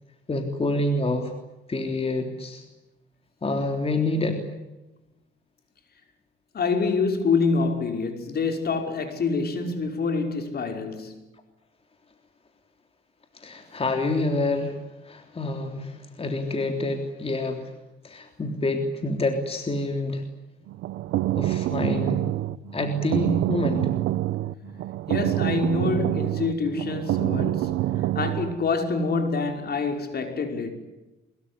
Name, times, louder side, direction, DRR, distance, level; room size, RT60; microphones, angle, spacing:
voice 1, 0.3-1.3 1.7-2.6 3.4-4.4 13.3-17.7 18.0-20.2 21.3-22.2 22.7-23.9, left 2 dB, 30° left, 3.5 m, -27 dB
voice 2, 6.5-11.2 25.1-30.7, left 4 dB, 55° left, 5.5 m, -26 dB
sound 1, 20.7-28.5, right 15 dB, 90° right, 0.8 m, -26 dB
24.0 x 22.0 x 9.9 m
cardioid pair, 90°, 20 cm